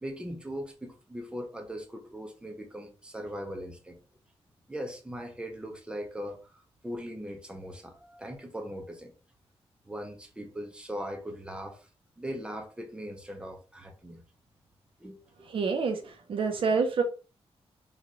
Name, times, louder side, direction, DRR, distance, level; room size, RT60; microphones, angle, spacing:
voice 1, 0.0-4.0 4.7-9.1 9.8-11.9 12.2-14.2 15.0-15.2 16.6-16.7, equal, 10° right, 0.6 m, -40 dB
voice 2, 15.5-17.0, right 5 dB, 55° right, 0.7 m, -27 dB
4.0 x 2.4 x 3.0 m
wide cardioid pair, 175°, 11 cm